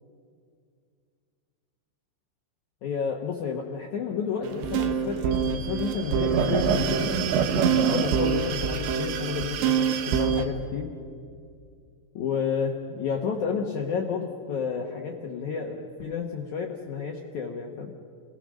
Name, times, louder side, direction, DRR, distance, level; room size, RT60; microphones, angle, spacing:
voice 1, 2.8-7.1 7.5-10.9 12.1-17.9, left 6 dB, 70° left, 1 dB, 1.8 m, -31 dB
sound 1, 4.4-10.4, right 7 dB, 80° right, 3.5 m, -25 dB
28.5 x 18.0 x 6.4 m, 2.3 s
omnidirectional pair, 5.2 m